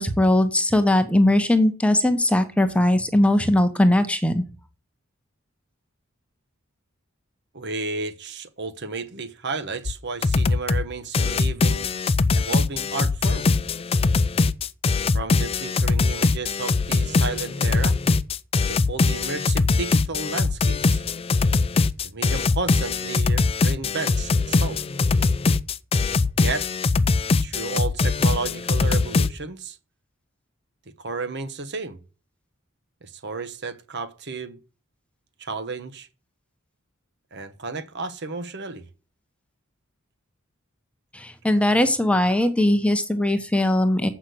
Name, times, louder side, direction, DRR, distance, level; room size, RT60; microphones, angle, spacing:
voice 1, 0.0-4.4 41.1-44.1, left 1 dB, 5° left, 1.0 m, -20 dB
voice 2, 7.5-11.9 12.3-13.5 15.1-18.0 18.6-21.0 22.0-24.8 26.4-26.7 27.4-29.8 31.0-32.0 33.0-34.6 35.4-36.1 37.3-38.8, right 4 dB, 55° right, 1.1 m, -32 dB
sound 1, 9.9-10.0 10.2-10.9 11.1-29.3, left 3 dB, 30° left, 0.4 m, -22 dB
8.1 x 6.1 x 7.8 m
head